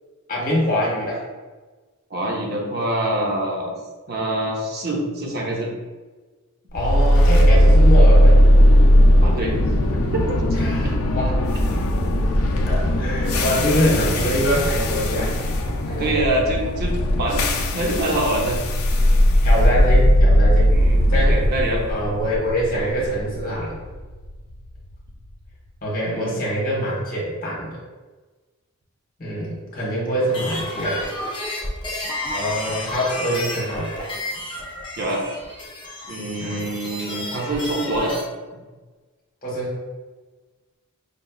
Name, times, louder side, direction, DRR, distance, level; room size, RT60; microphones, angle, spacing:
voice 1, 0.3-1.2 6.7-8.4 10.5-11.3 12.6-15.3 15.9-16.2 19.4-20.8 21.1-21.4 21.9-23.8 25.8-27.8 29.2-31.1 32.3-33.9 36.4-36.7 39.4-39.7, equal, 40° left, -5 dB, 1.4 m, -24 dB
voice 2, 2.1-3.7 4.1-5.7 9.2-9.6 10.1-10.2 16.0-18.6 20.7-21.8 26.1-26.4 35.0-35.2 36.1-38.2, right 1 dB, 45° right, -1 dB, 0.7 m, -25 dB
sound 1, 6.8-24.8, equal, 75° left, 0.5 m, -17 dB
sound 2, 30.2-38.2, left 1 dB, 20° left, 0.7 m, -31 dB
5.2 x 3.2 x 2.3 m, 1.3 s
head